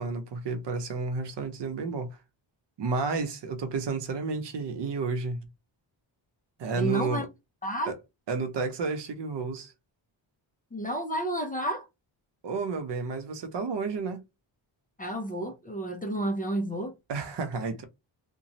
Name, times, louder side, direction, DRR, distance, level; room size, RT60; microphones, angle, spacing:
voice 1, 0.0-2.2 2.8-5.5 6.6-7.3 7.9-8.0 8.3-9.7 12.4-14.2 17.1-17.8, right 4 dB, 65° right, 0.8 m, -31 dB
voice 2, 6.8-7.3 7.6-7.9 10.7-11.9 15.0-16.9, right 1 dB, 20° left, 0.5 m, -31 dB
3.0 x 2.2 x 2.6 m
wide cardioid pair, 155°, 46 cm